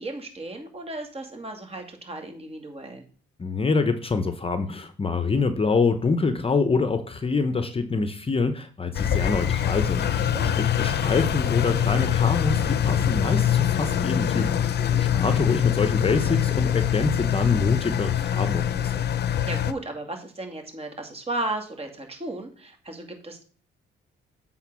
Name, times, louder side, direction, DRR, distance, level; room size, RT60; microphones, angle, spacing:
voice 1, 0.0-3.0 10.2-10.5 14.6-15.0 19.4-23.4, right 2 dB, 30° right, 4 dB, 2.3 m, -35 dB
voice 2, 3.4-19.0, left 4 dB, 30° left, 10 dB, 0.9 m, -26 dB
Engine, 8.9-19.7, left 9 dB, 55° left, 0.7 m, -24 dB
8.0 x 3.9 x 6.2 m, 0.42 s
cardioid pair, 90°, 20 cm